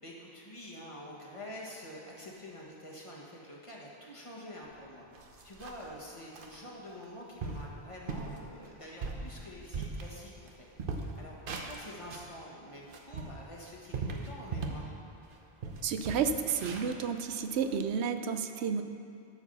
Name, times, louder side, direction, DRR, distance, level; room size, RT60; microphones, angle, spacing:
voice 1, 0.0-5.1 5.4-10.7 11.2-14.9, equal, 30° left, -4 dB, 1.4 m, -47 dB
sound 1, 4.7-4.8 5.1-5.9 6.3-6.6 7.0-7.1 7.4-7.7 8.1-8.4 8.8-10.5 10.8-12.3 12.8-14.9 15.3-15.4 15.6-17.8, right 4 dB, 55° right, 1.0 m, -39 dB
voice 2, 15.8-18.8, right 6 dB, 85° right, 8 dB, 0.9 m, -31 dB
12.0 x 4.6 x 6.8 m, 2.5 s
omnidirectional pair, 1.1 m